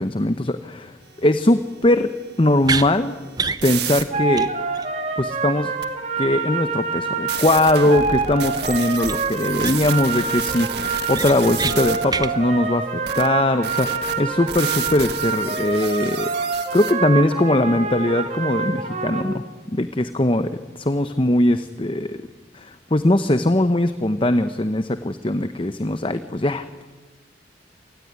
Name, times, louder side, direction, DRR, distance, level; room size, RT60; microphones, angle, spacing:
voice 1, 0.0-2.1 2.4-3.1 3.6-4.5 5.2-5.7 6.2-16.3 16.7-19.4 19.7-22.2 22.5-26.7, left 1 dB, 25° left, 10 dB, 0.8 m, -20 dB
sound 1, 2.3-4.0 5.8-5.9 7.3-12.0 13.1-13.3 13.6-16.9, right 8 dB, 55° right, 1.8 m, -31 dB
sound 2, 2.6-2.9 3.4-3.6 4.0-4.1 4.3-4.5 4.7-4.9 9.0-9.1 9.6-10.0 10.4-10.5 10.8-11.8 12.1-12.3, right 4 dB, 20° right, 0.9 m, -26 dB
sound 3, 4.1-19.2, right 4 dB, 35° right, 2.8 m, -26 dB
27.5 x 20.0 x 9.6 m, 1.3 s
head